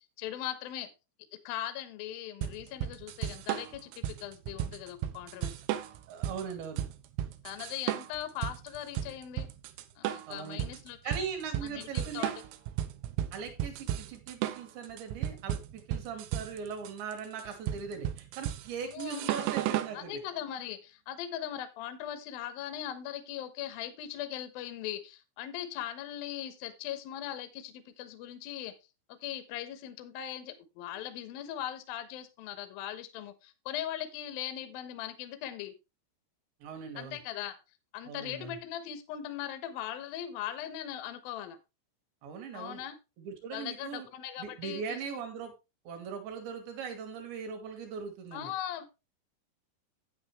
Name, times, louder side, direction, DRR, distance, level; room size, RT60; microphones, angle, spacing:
voice 1, 0.2-0.9 1.4-5.6 7.4-9.5 10.0-11.2 11.6-12.5 18.8-19.4 19.9-28.7 29.1-35.7 37.0-37.6 37.9-41.6 42.5-43.0 43.5-45.2 48.3-48.8, left 11 dB, 80° left, 10 dB, 2.2 m, -39 dB
sound 1, 2.4-20.0, right 12 dB, 90° right, 3.6 m, -35 dB
voice 2, 6.1-6.8 10.3-10.7 11.0-12.3 13.3-20.2 36.6-37.2 38.1-38.6 42.2-42.8 43.2-44.1 44.4-45.5 45.9-48.5, right 6 dB, 65° right, 5 dB, 4.0 m, -40 dB
9.7 x 9.0 x 3.3 m, 0.26 s
omnidirectional pair, 6.0 m